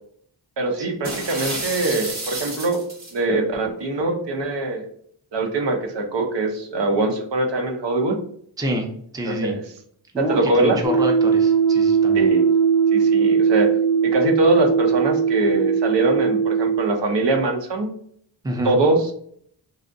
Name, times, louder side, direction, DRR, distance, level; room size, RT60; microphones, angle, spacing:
voice 1, 0.6-2.8 3.1-4.9 5.3-8.2 9.3-9.6 10.2-10.8 12.1-12.4 12.9-13.7 14.0-17.9 18.6-19.1, right 2 dB, 60° right, 3 dB, 0.6 m, -22 dB
sound 1, 1.0-3.2, right 2 dB, 35° right, 0.8 m, -30 dB
voice 2, 8.6-9.6 10.1-12.3 18.4-18.8, right 1 dB, 10° right, 2 dB, 0.5 m, -27 dB
sound 2, 10.8-16.9, right 6 dB, 65° left, 0.6 m, -19 dB
2.6 x 2.0 x 2.5 m, 0.63 s
cardioid pair, 40°, 48 cm